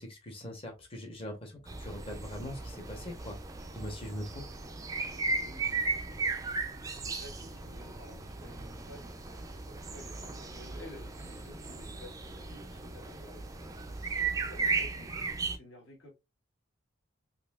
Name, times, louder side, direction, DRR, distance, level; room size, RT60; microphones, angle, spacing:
voice 1, 0.0-3.4 3.7-4.4, equal, 25° left, 1.0 m, -41 dB
sound 1, 1.7-15.6, right 4 dB, 15° right, 0.3 m, -36 dB
voice 2, 5.2-9.1 9.7-13.4 14.0-15.3 15.5-16.1, left 1 dB, 60° left, 1.6 m, -53 dB
4.0 x 2.7 x 2.4 m
head